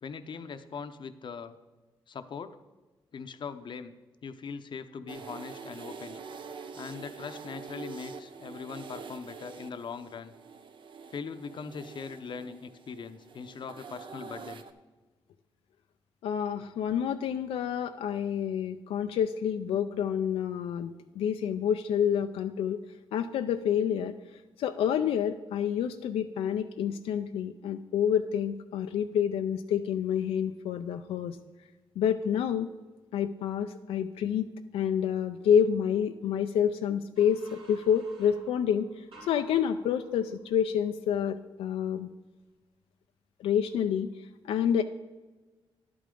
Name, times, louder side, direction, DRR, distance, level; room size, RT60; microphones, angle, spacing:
voice 1, 0.0-1.5 2.1-2.6 3.1-3.9 4.2-6.2 6.7-10.3 11.1-14.6, left 5 dB, 55° left, 10 dB, 0.7 m, -41 dB
sound 1, 5.1-14.7, right 5 dB, 60° right, 0.7 m, -45 dB
voice 2, 16.2-22.8 23.1-24.1 24.6-31.4 32.0-32.7 33.1-34.5 34.7-42.1 43.4-44.1 44.4-44.8, left 8 dB, 90° left, 7 dB, 0.4 m, -28 dB
sound 2, 37.2-40.8, right 3 dB, 75° right, 3.3 m, -54 dB
11.0 x 8.6 x 3.8 m, 1.2 s
cardioid pair, 80°, 10 cm